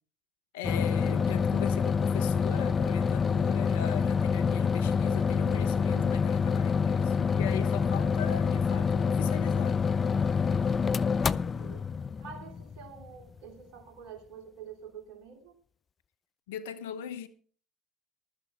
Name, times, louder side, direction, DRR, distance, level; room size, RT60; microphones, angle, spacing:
voice 1, 0.5-9.8 16.5-17.3, left 10 dB, 85° left, 1.1 m, -40 dB
sound 1, 0.6-13.2, left 6 dB, 35° left, 0.5 m, -27 dB
voice 2, 11.3-11.9 12.2-15.5, right 7 dB, 70° right, 3.0 m, -47 dB
15.0 x 12.5 x 3.7 m
hypercardioid pair, 70°, 0 cm